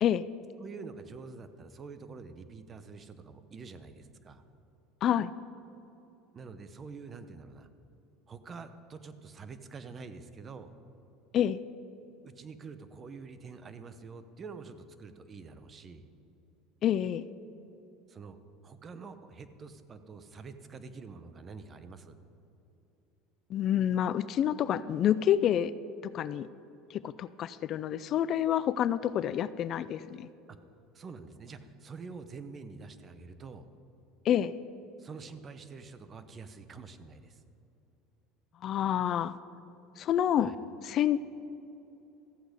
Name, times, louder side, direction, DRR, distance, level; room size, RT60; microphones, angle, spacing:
voice 1, 0.6-4.4 6.3-7.7 8.3-10.7 12.2-16.1 18.1-18.4 18.6-22.2 30.9-33.7 35.0-37.4 40.4-40.5, right 4 dB, 30° right, 11 dB, 0.8 m, -46 dB
voice 2, 5.0-5.3 11.3-11.6 16.8-17.2 23.5-25.7 26.0-26.5 26.9-30.3 34.2-34.5 38.6-39.3 40.0-40.5 40.8-41.2, left 10 dB, 50° left, 16 dB, 0.3 m, -28 dB
14.0 x 7.9 x 5.1 m, 2.9 s
supercardioid pair, 100°, 0 cm